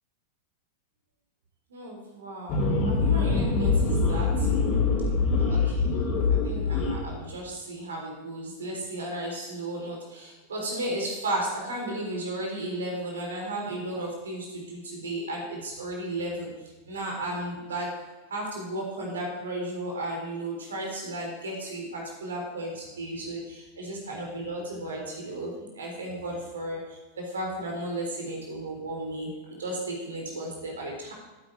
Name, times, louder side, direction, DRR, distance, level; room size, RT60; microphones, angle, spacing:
voice 1, 1.7-4.5 5.4-6.0 6.3-18.0 18.3-31.1, right 1 dB, 70° right, 0 dB, 3.9 m, -34 dB
sound 1, 2.5-7.0, left 4 dB, 40° left, 3.8 m, -24 dB
14.0 x 9.5 x 4.8 m, 1.1 s
figure-of-eight pair, 90°, 0 cm